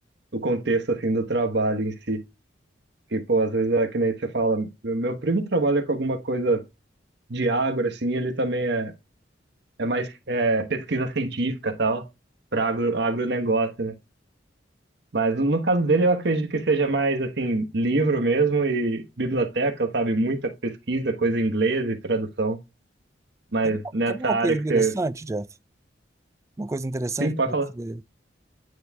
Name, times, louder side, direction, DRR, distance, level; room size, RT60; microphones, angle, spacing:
voice 1, 0.3-2.2 3.1-6.6 7.3-8.9 9.8-12.0 12.5-13.9 15.1-22.6 23.5-24.9 27.2-27.7, right 3 dB, 60° right, 1.1 m, -24 dB
voice 2, 24.1-25.5 26.6-28.0, right 2 dB, 15° right, 0.3 m, -29 dB
9.4 x 3.2 x 3.5 m
head